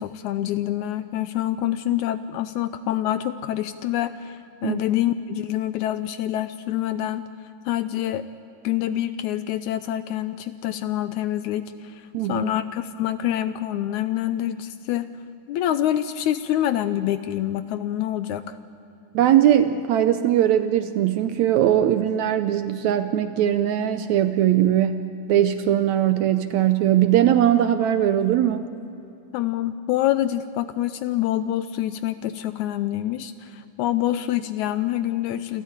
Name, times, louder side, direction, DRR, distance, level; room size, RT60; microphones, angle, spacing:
voice 1, 0.0-7.2 7.7-8.2 8.6-15.1 15.5-18.6 29.3-35.6, left 12 dB, 80° left, 12 dB, 1.8 m, -26 dB
voice 2, 12.1-12.5 19.1-25.0 25.3-28.6, right 11 dB, 75° right, 10 dB, 1.8 m, -20 dB
27.5 x 14.0 x 8.8 m, 2.9 s
omnidirectional pair, 3.8 m